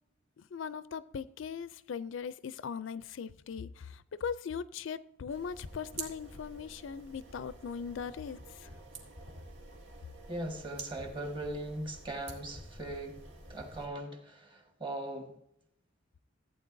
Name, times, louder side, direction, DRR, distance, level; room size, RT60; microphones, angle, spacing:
voice 1, 0.4-8.7, left 6 dB, 65° left, 0.4 m, -40 dB
sound 1, 5.3-13.9, right 2 dB, 65° right, 2.0 m, -48 dB
voice 2, 10.3-13.2 13.5-15.3, right 1 dB, 25° right, 1.5 m, -39 dB
15.0 x 8.9 x 2.6 m
head